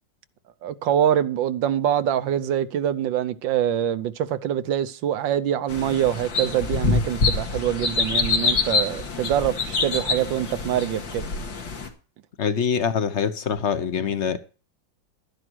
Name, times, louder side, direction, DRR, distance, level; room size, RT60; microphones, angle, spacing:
voice 1, 0.6-11.3, right 10 dB, 75° right, 1.5 m, -24 dB
sound 1, 5.7-11.9, left 4 dB, 75° left, 2.7 m, -25 dB
voice 2, 12.4-14.4, left 7 dB, 45° left, 1.0 m, -24 dB
12.5 x 10.0 x 4.6 m
omnidirectional pair, 2.1 m